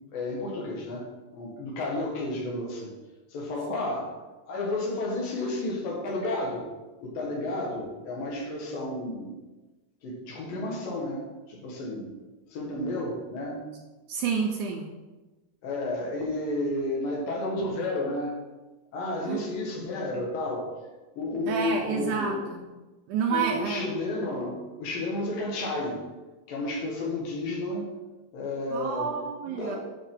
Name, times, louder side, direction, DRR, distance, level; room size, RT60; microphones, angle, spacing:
voice 1, 0.1-2.9 3.3-4.1 4.5-6.6 7.0-9.4 10.0-12.1 12.5-13.6 15.6-18.3 18.9-20.7 21.1-22.5 23.3-26.0 26.5-27.9 28.3-29.1 29.4-29.8, left 2 dB, 85° left, -2 dB, 3.3 m, -31 dB
voice 2, 14.1-14.9 19.2-19.4 21.5-22.7 23.1-24.0 28.7-29.8, right 6 dB, 75° right, 1 dB, 2.0 m, -29 dB
9.9 x 5.7 x 3.8 m, 1.2 s
omnidirectional pair, 3.9 m